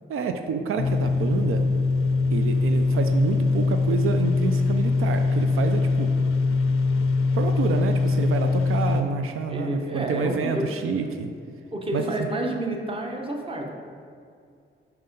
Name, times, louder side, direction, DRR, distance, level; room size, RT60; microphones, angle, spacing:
voice 1, 0.1-1.6 2.3-6.1 7.3-11.3 11.9-12.0, right 5 dB, 85° right, 6 dB, 0.5 m, -28 dB
sound 1, 0.8-9.0, left 3 dB, 90° left, 0.4 m, -22 dB
voice 2, 9.5-10.7 11.7-13.7, right 1 dB, 25° right, 2 dB, 0.8 m, -29 dB
5.6 x 4.6 x 5.2 m, 2.4 s
wide cardioid pair, 135°, 21 cm